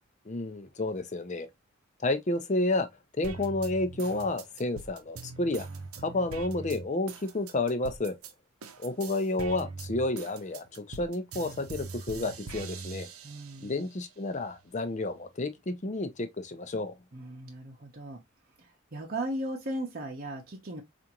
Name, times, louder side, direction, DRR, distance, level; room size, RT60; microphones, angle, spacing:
voice 1, 0.3-1.5 2.0-2.9 3.2-5.7 6.0-8.1 8.8-13.1 13.6-16.9, left 2 dB, 35° left, 0.6 m, -30 dB
sound 1, 3.2-8.3 8.6-13.8 14.3-15.2, right 4 dB, 80° right, 0.6 m, -42 dB
voice 2, 13.2-13.9 17.1-18.2 18.6-20.8, right 1 dB, 45° right, 0.8 m, -37 dB
4.8 x 2.5 x 2.8 m
head